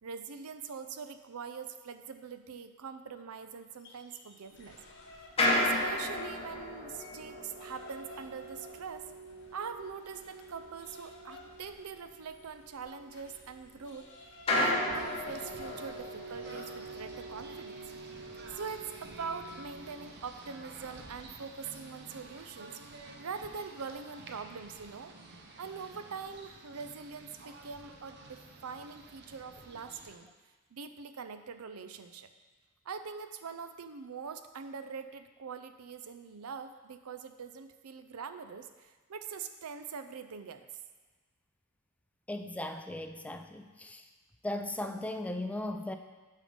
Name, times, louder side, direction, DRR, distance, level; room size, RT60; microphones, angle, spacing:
voice 1, 0.0-4.8 5.4-9.0 9.5-14.1 14.6-17.9 18.5-22.8 23.2-25.1 25.6-30.3 30.7-32.3 32.8-40.7, right 5 dB, 75° right, 9 dB, 0.6 m, -43 dB
sound 1, 3.7-6.4 6.7-17.0, left 2 dB, 55° left, 1.4 m, -56 dB
sound 2, 4.6-14.0 14.4-20.0, left 1 dB, 25° left, 1.5 m, -36 dB
Singing / Bird, 14.9-30.1, right 2 dB, 50° right, 0.9 m, -51 dB
voice 2, 42.3-44.0 44.4-46.0, left 1 dB, 5° left, 6 dB, 0.4 m, -37 dB
8.3 x 5.6 x 5.2 m, 1.3 s
head